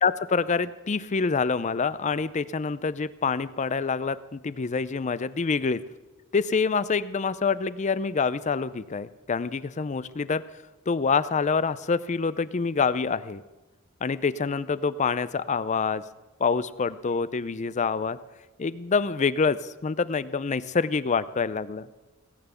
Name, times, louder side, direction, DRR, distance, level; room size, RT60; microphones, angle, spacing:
voice 1, 0.0-5.8 6.3-10.4 10.9-13.4 14.0-16.0 16.4-18.2 18.6-21.9, left 5 dB, 35° left, 16 dB, 0.5 m, -26 dB
17.5 x 9.0 x 7.0 m, 1.1 s
head